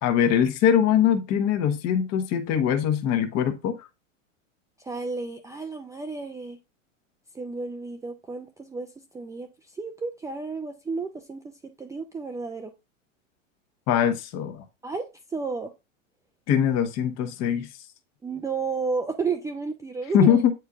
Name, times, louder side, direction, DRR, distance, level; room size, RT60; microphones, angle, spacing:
voice 1, 0.0-3.8 13.9-14.6 16.5-17.7 20.1-20.5, left 9 dB, 40° left, 1.2 m, -22 dB
voice 2, 4.8-6.6 7.3-8.9 9.1-9.5 9.7-11.4 11.8-12.7 14.8-15.7 18.2-20.4, right 4 dB, 10° right, 0.4 m, -32 dB
8.3 x 4.5 x 2.5 m
hypercardioid pair, 100°, 39 cm